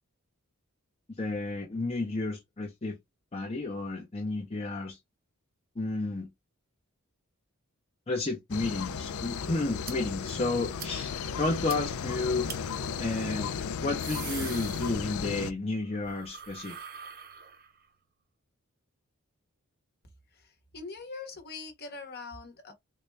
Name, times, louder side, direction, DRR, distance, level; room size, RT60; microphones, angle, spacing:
voice 1, 1.2-3.0 3.3-5.0 5.8-6.3 8.1-11.1 11.4-12.5 13.0-13.5 13.8-16.7, left 2 dB, 30° left, 0.6 m, -31 dB
sound 1, 8.5-15.5, left 6 dB, 75° left, 0.4 m, -35 dB
sound 2, 9.8-9.9 10.3-10.4 10.8-10.9 11.3-11.4 11.7-11.8 12.5-12.6 13.7-15.4 15.7-17.8, right 8 dB, 40° right, 0.6 m, -43 dB
voice 2, 20.7-22.7, left 4 dB, 45° left, 1.0 m, -42 dB
3.9 x 2.2 x 3.2 m
head